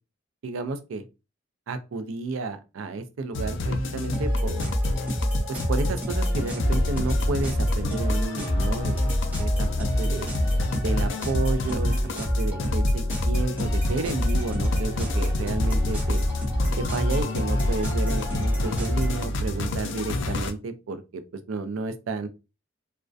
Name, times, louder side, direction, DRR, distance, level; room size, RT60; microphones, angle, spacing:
voice 1, 0.4-1.1 1.7-4.7 5.5-9.0 9.4-9.5 9.8-10.3 10.8-16.3 16.8-22.3, right 3 dB, 85° right, 0.4 m, -31 dB
sound 1, 3.3-20.5, left 2 dB, 65° left, 0.3 m, -29 dB
sound 2, 4.1-19.2, equal, 10° right, 0.6 m, -27 dB
2.3 x 2.1 x 2.5 m
head